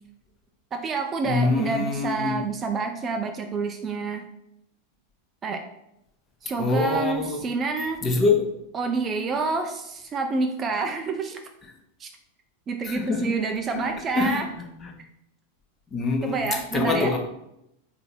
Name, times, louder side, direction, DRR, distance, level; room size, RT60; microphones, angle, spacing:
voice 1, 0.7-4.2 5.4-5.6 6.4-8.0 8.7-11.4 12.0-12.1 12.7-14.5 16.2-17.2, right 4 dB, 25° right, 5 dB, 0.4 m, -28 dB
voice 2, 1.2-2.4 6.6-7.4 8.0-8.4 12.8-13.4 13.7-13.8 14.2-14.9 15.9-17.2, left 3 dB, 25° left, 2 dB, 0.8 m, -25 dB
3.8 x 2.7 x 4.3 m, 0.83 s
figure-of-eight pair, 90°, 0 cm